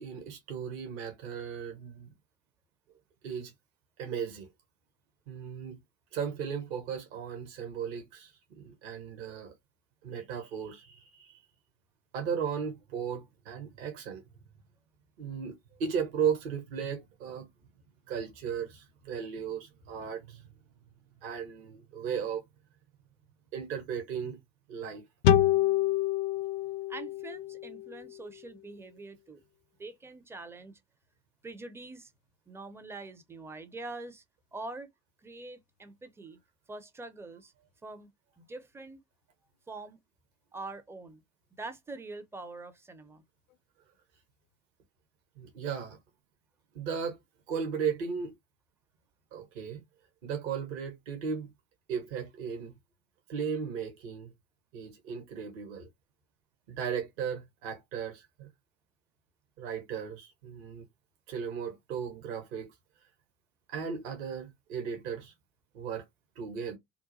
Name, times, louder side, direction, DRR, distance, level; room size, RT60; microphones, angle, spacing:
voice 1, 0.0-2.1 3.2-3.5 4.0-4.5 5.3-5.8 6.1-9.5 10.0-11.4 12.1-14.2 15.2-17.5 18.1-20.4 21.2-22.4 23.5-24.4 24.7-25.0 45.4-46.0 46.7-47.2 47.5-48.3 49.3-49.8 50.2-51.5 51.9-52.7 53.3-54.3 54.7-55.9 56.7-58.5 59.6-60.9 61.3-62.7 63.7-65.3 65.7-66.0 66.4-66.8, right 7 dB, 60° right, 1.0 m, -36 dB
sound 1, 25.2-28.6, left 11 dB, 60° left, 0.5 m, -27 dB
voice 2, 26.9-29.4 29.8-30.8 31.4-32.1 32.5-34.2 34.5-34.9 35.2-36.4 36.7-37.5 37.8-38.1 38.4-39.0 39.7-40.0 40.5-41.2 41.6-43.2, right 3 dB, 5° right, 0.4 m, -44 dB
2.8 x 2.2 x 2.6 m
figure-of-eight pair, 60°, 40 cm